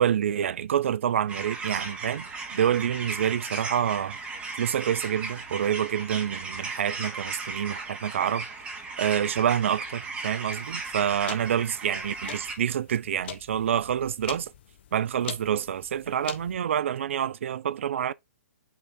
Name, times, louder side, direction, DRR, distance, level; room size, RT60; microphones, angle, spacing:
voice 1, 0.0-4.2 4.6-8.5 9.0-14.5 14.9-18.1, right 9 dB, 55° right, 0.4 m, -27 dB
sound 1, 1.3-12.5, right 3 dB, 15° right, 2.0 m, -36 dB
sound 2, 10.6-16.6, left 10 dB, 45° left, 0.7 m, -44 dB
5.9 x 3.7 x 4.3 m
figure-of-eight pair, 125°, 8 cm